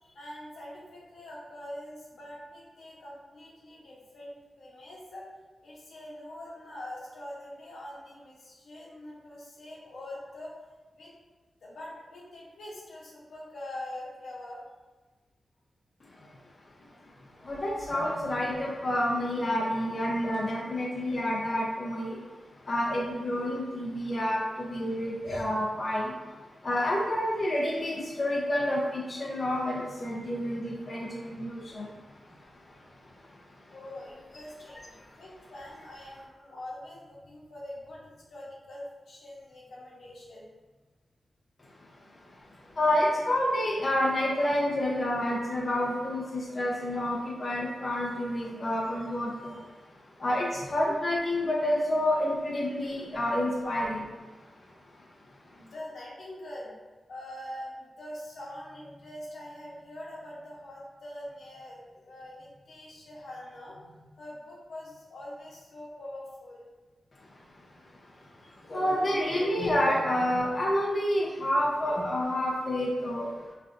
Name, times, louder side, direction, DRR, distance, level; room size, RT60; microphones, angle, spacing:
voice 1, 0.0-5.3 5.6-10.5 11.0-11.1 11.6-14.6 31.3-31.4 33.7-40.5 55.5-56.7 57.1-66.6 68.2-68.6, left 1 dB, 85° left, -5 dB, 0.9 m, -44 dB
voice 2, 17.4-22.3 22.6-33.7 34.9-35.0 41.9-49.7 50.2-54.3 54.9-55.0 67.2-67.3 68.3-73.3, left 1 dB, 40° left, -4 dB, 0.6 m, -29 dB
3.8 x 3.2 x 2.5 m, 1.3 s
wide cardioid pair, 100°, 0 cm